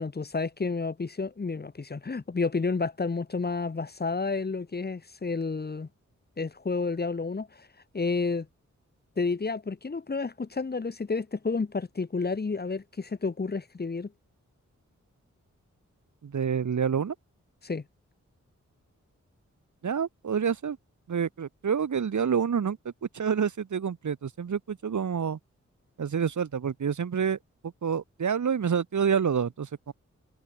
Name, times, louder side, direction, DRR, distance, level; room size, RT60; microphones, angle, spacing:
voice 1, 0.0-5.9 6.4-7.7 7.9-8.5 9.2-14.1 17.6-17.8, left 4 dB, 35° left, 1.2 m, -30 dB
voice 2, 16.2-17.1 19.8-20.8 21.1-22.8 23.1-25.4 26.0-27.4 27.6-29.9, right 7 dB, 85° right, 3.0 m, -28 dB
wide cardioid pair, 110°, 29 cm